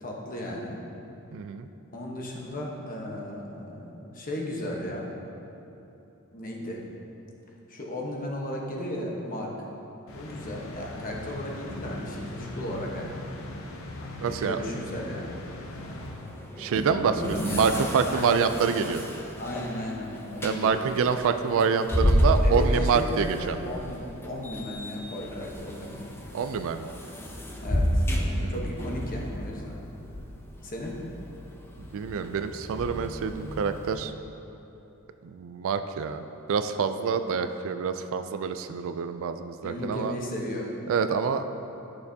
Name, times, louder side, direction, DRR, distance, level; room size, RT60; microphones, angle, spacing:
voice 1, 0.0-0.8 1.9-5.1 6.3-6.8 7.7-9.5 10.1-13.2 14.0-15.4 17.1-18.4 19.4-20.8 22.4-26.0 27.6-28.1 28.5-29.8 30.6-31.0 39.6-40.7, left 1 dB, 40° left, -1 dB, 1.1 m, -35 dB
voice 2, 1.3-1.7 14.2-14.6 16.6-19.0 20.4-23.6 26.3-26.9 28.4-28.7 31.8-34.1 35.2-36.2 36.5-40.1 40.9-41.4, right 6 dB, 65° right, 8 dB, 0.3 m, -27 dB
sound 1, 10.1-16.8, left 1 dB, 65° left, 0.7 m, -40 dB
sound 2, 15.7-34.0, equal, 10° left, 0.6 m, -31 dB
11.5 x 6.7 x 2.8 m, 3.0 s
head